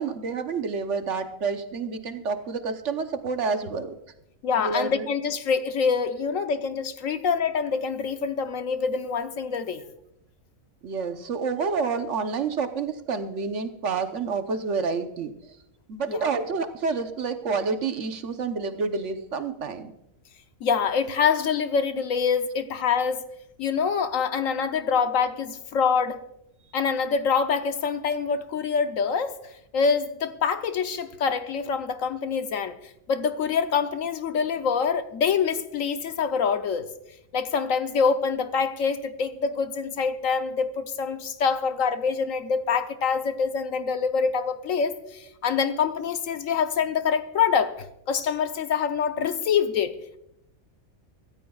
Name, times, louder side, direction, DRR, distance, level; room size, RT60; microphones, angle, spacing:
voice 1, 0.0-4.0 4.6-5.1 10.8-15.3 15.9-19.9, right 4 dB, 60° right, 1.2 m, -28 dB
voice 2, 4.4-9.8 16.1-16.3 20.6-23.2 23.6-26.2 26.7-29.4 29.7-32.7 33.1-36.9 37.3-47.7 48.1-49.9, left 6 dB, 70° left, 1.2 m, -25 dB
25.0 x 14.0 x 2.3 m
omnidirectional pair, 1.5 m